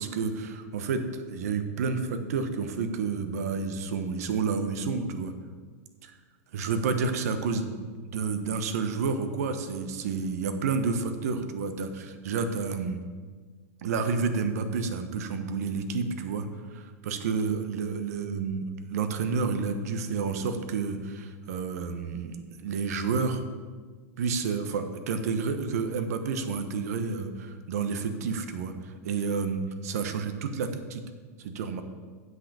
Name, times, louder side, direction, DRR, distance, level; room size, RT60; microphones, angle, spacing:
voice 1, 0.0-5.3 6.0-6.2 6.5-13.0 13.8-23.4 24.2-31.0 31.4-31.8, right 5 dB, 70° right, 8 dB, 1.1 m, -30 dB
7.8 x 6.0 x 6.9 m, 1.5 s
supercardioid pair, 145°, 9 cm